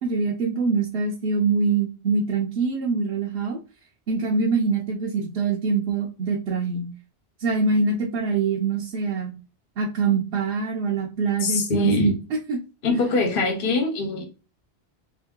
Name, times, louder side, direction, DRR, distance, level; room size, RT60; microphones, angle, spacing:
voice 1, 0.0-3.6 4.1-6.9 7.4-9.3 9.8-12.2 12.5-12.6, right 4 dB, 70° right, -2 dB, 0.9 m, -24 dB
voice 2, 11.4-12.1 12.8-14.2, left 2 dB, 55° left, 4 dB, 0.9 m, -22 dB
3.4 x 2.8 x 3.6 m, 0.32 s
omnidirectional pair, 1.1 m